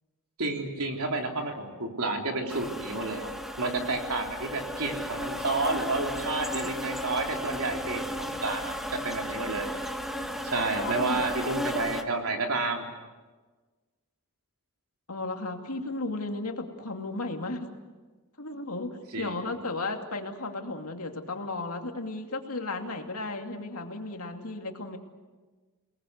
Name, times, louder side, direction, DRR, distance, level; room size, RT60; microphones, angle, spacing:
voice 1, 0.4-3.3 3.6-9.7 10.4-12.9 19.1-19.6, right 3 dB, 75° right, 2 dB, 3.6 m, -30 dB
sound 1, 2.5-12.0, equal, ahead, 1.5 m, -34 dB
voice 2, 10.8-11.2 15.1-17.7 18.4-25.0, left 2 dB, 75° left, 4 dB, 2.6 m, -34 dB
28.5 x 19.5 x 8.1 m, 1.3 s
head